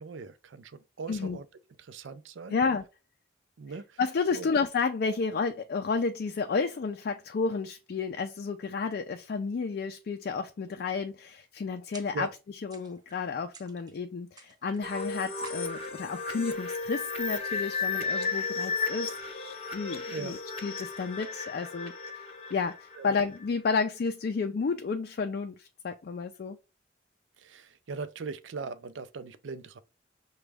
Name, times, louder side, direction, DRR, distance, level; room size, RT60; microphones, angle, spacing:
voice 1, 0.0-1.5 1.8-2.6 3.6-4.0 4.3-4.5 12.1-12.3 20.1-20.3 23.0-23.1 27.4-29.8, right 4 dB, 90° right, 0.5 m, -40 dB
voice 2, 2.5-2.8 4.0-12.3 12.6-26.6, left 4 dB, 55° left, 0.3 m, -31 dB
sound 1, 11.9-12.4 12.7-13.2 13.5-14.0 14.4-15.0 15.4-16.1, right 4 dB, 20° right, 0.6 m, -53 dB
sound 2, 14.8-23.4, left 4 dB, 35° left, 0.7 m, -34 dB
6.0 x 2.2 x 3.3 m
head